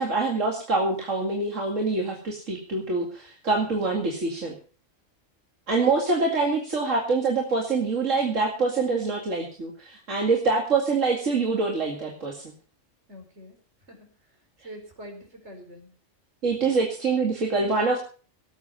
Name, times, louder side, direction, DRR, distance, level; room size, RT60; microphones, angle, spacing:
voice 1, 0.0-4.5 5.7-12.5 16.4-18.0, right 3 dB, 80° right, -1 dB, 2.7 m, -25 dB
voice 2, 13.1-13.6 13.9-14.1 14.6-15.9 16.6-16.9 17.8-18.0, equal, 65° right, 3 dB, 5.1 m, -45 dB
18.0 x 8.4 x 5.5 m, 0.40 s
omnidirectional pair, 1.3 m